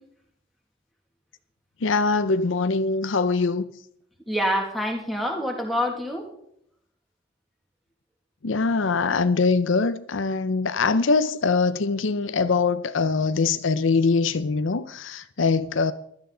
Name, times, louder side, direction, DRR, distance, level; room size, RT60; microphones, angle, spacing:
voice 1, 1.8-3.6 8.4-15.9, left 4 dB, 75° left, 0.6 m, -23 dB
voice 2, 4.3-6.3, equal, ahead, 2.2 m, -26 dB
16.5 x 12.5 x 3.9 m
head